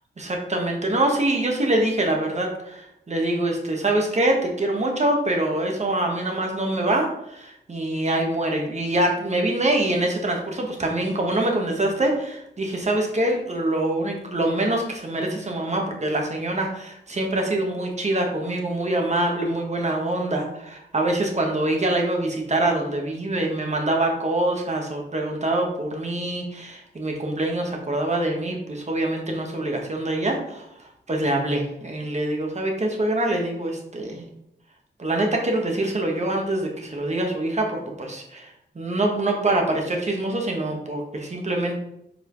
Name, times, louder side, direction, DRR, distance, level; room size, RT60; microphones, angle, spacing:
voice 1, 0.2-34.2 35.0-41.8, right 1 dB, 40° right, 1 dB, 1.5 m, -25 dB
6.8 x 4.8 x 3.2 m, 0.79 s
wide cardioid pair, 85°, 18 cm